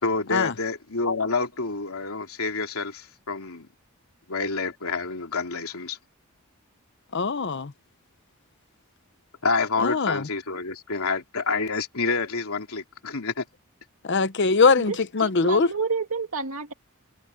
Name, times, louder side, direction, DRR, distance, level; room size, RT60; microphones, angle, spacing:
voice 1, 0.0-3.7 4.3-6.0 9.4-13.4, left 4 dB, 80° left, 3.0 m, -28 dB
voice 2, 7.1-7.7 9.8-10.3 14.0-15.7, left 4 dB, 55° left, 0.8 m, -22 dB
voice 3, 14.7-16.7, right 4 dB, 80° right, 2.2 m, -30 dB
head